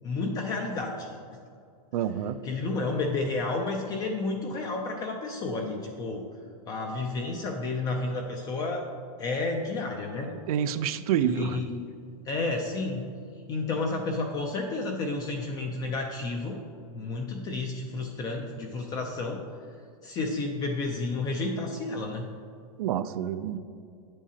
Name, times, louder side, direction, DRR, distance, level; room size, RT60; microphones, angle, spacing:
voice 1, 0.0-1.1 2.4-6.3 6.7-8.9 9.2-10.3 11.2-11.8 12.3-13.1 13.5-16.6 16.9-19.4 20.0-22.3, left 3 dB, 20° left, 2 dB, 0.4 m, -31 dB
voice 2, 1.9-2.4 10.5-11.6 22.8-23.6, right 9 dB, 70° right, 13 dB, 0.4 m, -28 dB
8.7 x 7.5 x 2.8 m, 2.3 s
supercardioid pair, 160°, 20 cm